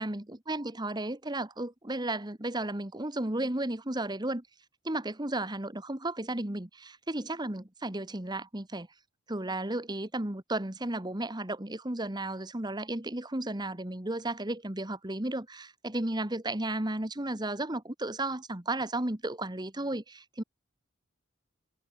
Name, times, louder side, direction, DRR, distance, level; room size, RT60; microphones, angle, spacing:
voice 1, 0.0-4.4 4.8-8.9 9.3-20.4, right 2 dB, 20° right, 1.6 m, -34 dB
head